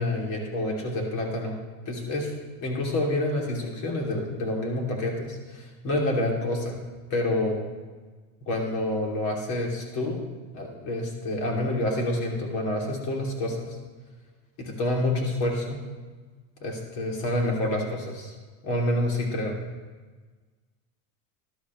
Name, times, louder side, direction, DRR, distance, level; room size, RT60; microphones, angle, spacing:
voice 1, 0.0-2.3 2.6-6.8 7.1-7.6 8.4-10.2 10.5-13.7 14.6-15.8 16.6-18.3 18.6-19.6, left 1 dB, 50° left, 0 dB, 2.9 m, -28 dB
12.5 x 12.0 x 3.1 m, 1.4 s
supercardioid pair, 140°, 40 cm